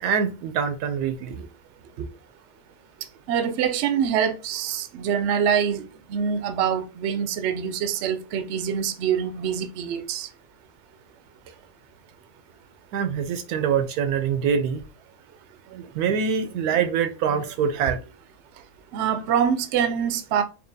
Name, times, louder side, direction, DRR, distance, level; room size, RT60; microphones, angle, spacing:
voice 1, 0.0-1.4 12.9-14.8 15.7-18.0, right 7 dB, 85° right, 1.1 m, -24 dB
voice 2, 3.3-10.3 18.9-20.4, right 8 dB, 65° right, 0.7 m, -25 dB
4.5 x 2.8 x 2.6 m
omnidirectional pair, 1.6 m